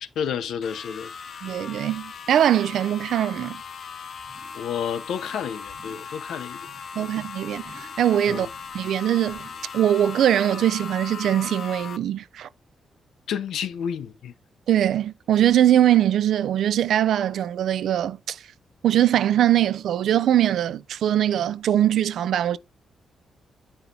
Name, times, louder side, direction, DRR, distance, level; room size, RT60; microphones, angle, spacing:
voice 1, 0.0-1.1 4.5-6.7 7.0-7.1 8.3-8.5 13.3-14.3, left 8 dB, 85° left, 0.7 m, -30 dB
sound 1, 0.6-12.0, left 6 dB, 45° left, 0.4 m, -38 dB
voice 2, 1.4-3.6 7.0-8.5 8.7-9.5 9.7-12.5 14.7-18.4 18.8-22.6, right 11 dB, 75° right, 0.4 m, -21 dB
sound 2, 4.2-4.7 4.9-5.3 5.6-6.1 6.5-7.0 7.6-8.1 8.4-8.9 9.3-9.8 10.2-10.3, right 4 dB, 35° right, 1.4 m, -53 dB
9.4 x 5.4 x 2.7 m
wide cardioid pair, 175°, 0 cm